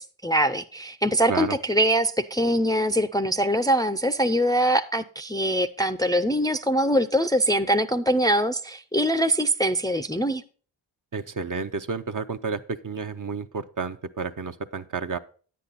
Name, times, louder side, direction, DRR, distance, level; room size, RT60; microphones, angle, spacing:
voice 1, 0.0-10.4, right 1 dB, 10° left, 0.5 m, -23 dB
voice 2, 11.1-15.2, right 5 dB, 40° right, 0.8 m, -31 dB
9.8 x 8.5 x 4.1 m
cardioid pair, 50°, 49 cm